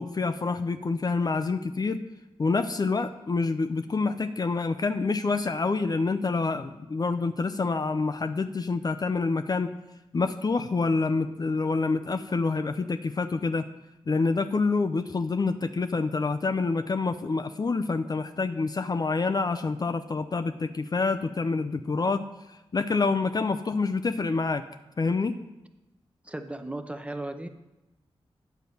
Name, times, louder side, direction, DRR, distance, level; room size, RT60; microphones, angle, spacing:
voice 1, 0.0-2.0 2.4-9.7 10.1-13.6 14.1-22.2 22.7-24.6 25.0-25.3, left 4 dB, 40° left, 9 dB, 0.5 m, -27 dB
voice 2, 26.2-27.5, right 1 dB, 10° right, 8 dB, 0.7 m, -36 dB
9.3 x 3.9 x 7.0 m, 0.99 s
cardioid pair, 65°, 10 cm